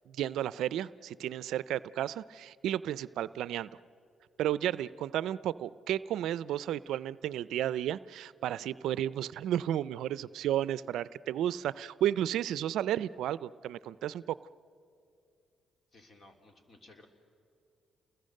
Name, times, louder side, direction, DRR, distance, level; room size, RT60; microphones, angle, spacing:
voice 1, 0.1-3.7 4.4-14.4, right 11 dB, 80° right, 17 dB, 0.5 m, -33 dB
voice 2, 15.9-17.1, left 2 dB, 40° left, 4 dB, 3.4 m, -57 dB
29.5 x 21.5 x 6.5 m, 2.5 s
cardioid pair, 90°, 0 cm